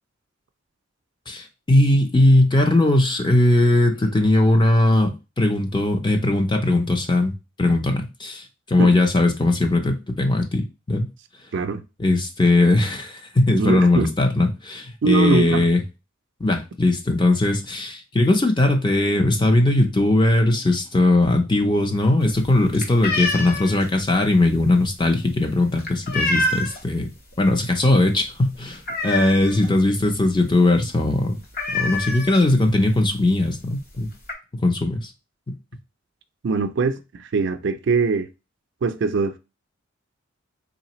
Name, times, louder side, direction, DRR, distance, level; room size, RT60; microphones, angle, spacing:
voice 1, 1.3-11.1 12.0-15.8 16.4-27.1 27.4-31.4 31.7-34.1 34.5-35.1 35.5-35.6, left 2 dB, 20° left, 0.5 m, -19 dB
voice 2, 13.5-14.1 15.0-15.7 36.4-38.3 38.8-39.4, right 4 dB, 55° right, 0.4 m, -22 dB
sound 1, 22.2-27.0 27.3-27.7 27.9-28.0 28.4-29.8 30.1-30.2 30.5-30.7 31.0-31.1 31.5-32.8 33.5-33.6 33.9-34.3, left 2 dB, 45° left, 0.9 m, -27 dB
3.9 x 3.3 x 3.0 m
head